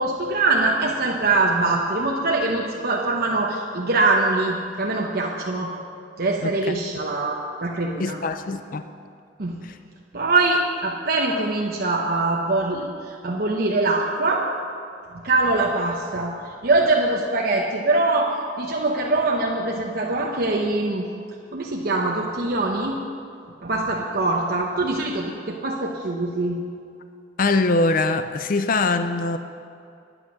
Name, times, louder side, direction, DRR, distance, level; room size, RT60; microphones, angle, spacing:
voice 1, 0.0-5.7 6.2-8.2 9.4-9.6 10.1-14.5 15.1-21.1 21.5-23.0 23.6-26.6, right 2 dB, 55° right, -1 dB, 0.9 m, -23 dB
voice 2, 8.0-8.9 9.6-9.7 27.4-29.4, left 3 dB, 50° left, 9 dB, 0.4 m, -22 dB
11.0 x 9.7 x 6.2 m, 2.5 s
head